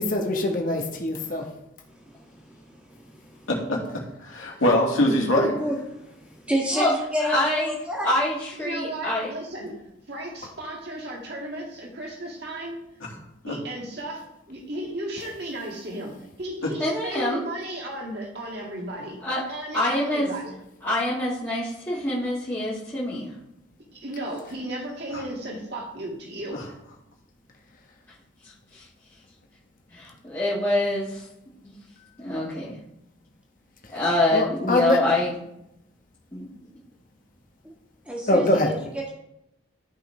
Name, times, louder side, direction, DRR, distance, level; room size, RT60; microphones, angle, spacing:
voice 1, 0.0-1.5 34.3-35.0 38.3-38.7, left 1 dB, 40° left, 1 dB, 1.3 m, -23 dB
voice 2, 1.9-3.4 5.5-5.8 6.0-8.1 38.0-39.1, equal, 5° right, -3 dB, 1.7 m, -30 dB
voice 3, 3.5-3.8 4.2-5.6 13.0-13.1 13.4-13.6 16.6-16.7 25.1-25.2 26.5-26.6, left 1 dB, 85° left, -2 dB, 2.1 m, -23 dB
voice 4, 7.2-7.7 8.0-9.3 16.8-17.5 19.2-19.4 19.7-20.3 20.8-23.3 28.4-28.9 29.9-31.2 31.6-31.7 32.2-32.7 33.9-35.3 36.3-36.5, left 1 dB, 15° left, -11 dB, 1.6 m, -25 dB
voice 5, 8.6-9.8 10.1-12.8 13.5-19.2 19.5-20.5 23.9-26.6, right 1 dB, 55° right, -2 dB, 2.0 m, -35 dB
13.0 x 5.5 x 3.3 m, 0.84 s
head